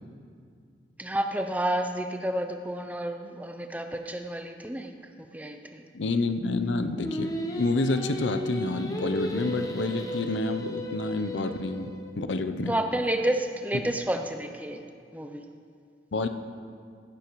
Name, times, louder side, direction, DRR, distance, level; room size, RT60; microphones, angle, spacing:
voice 1, 1.0-4.9 5.3-5.8 12.7-14.8 15.1-15.4, right 1 dB, 10° right, 6 dB, 0.5 m, -30 dB
voice 2, 5.9-12.7 13.8-13.9 16.1-16.3, left 2 dB, 85° left, 9 dB, 0.6 m, -29 dB
Singing, 7.0-12.1, equal, 20° left, 0.8 m, -35 dB
15.5 x 11.5 x 3.1 m, 2.3 s
head